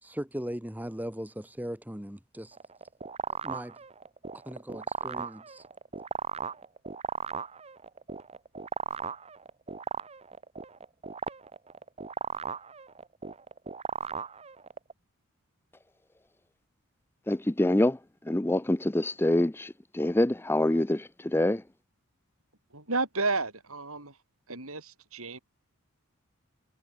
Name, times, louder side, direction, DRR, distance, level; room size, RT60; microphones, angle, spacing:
voice 1, 0.0-2.6 3.4-3.8 4.5-5.6, equal, 5° right, 1.9 m, -38 dB
sound 1, 2.5-14.9, right 5 dB, 25° right, 0.8 m, -37 dB
voice 2, 17.3-18.0 18.3-21.6, left 1 dB, 10° left, 0.5 m, -26 dB
voice 3, 22.7-24.2 24.5-25.4, right 3 dB, 70° right, 7.1 m, -32 dB
head